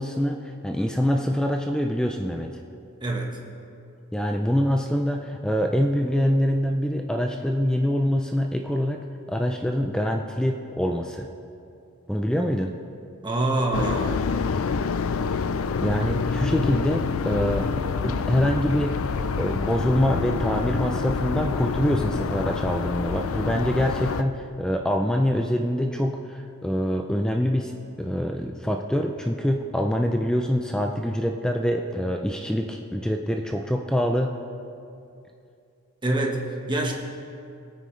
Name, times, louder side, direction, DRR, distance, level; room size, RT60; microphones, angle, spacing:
voice 1, 0.0-2.5 4.1-9.0 9.3-11.3 12.1-12.7 15.8-19.0 19.4-27.7 28.0-34.4, equal, 5° left, 3 dB, 0.4 m, -25 dB
voice 2, 3.0-3.4 13.2-14.5 36.0-36.9, right 2 dB, 20° right, 0 dB, 1.3 m, -26 dB
sound 1, 13.7-24.2, left 5 dB, 65° left, 0.4 m, -27 dB
21.5 x 9.3 x 3.3 m, 2.6 s
head